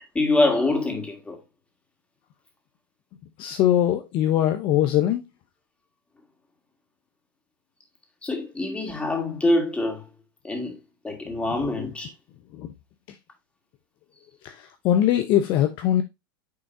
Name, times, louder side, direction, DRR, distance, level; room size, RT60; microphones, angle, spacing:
voice 1, 0.1-1.4 8.2-10.1 10.4-10.8 11.0-12.1, left 2 dB, 10° left, 2.5 m, -24 dB
voice 2, 3.4-5.2 12.5-12.7 14.4-16.0, left 11 dB, 40° left, 0.8 m, -21 dB
9.6 x 3.8 x 2.7 m
hypercardioid pair, 110°, 12 cm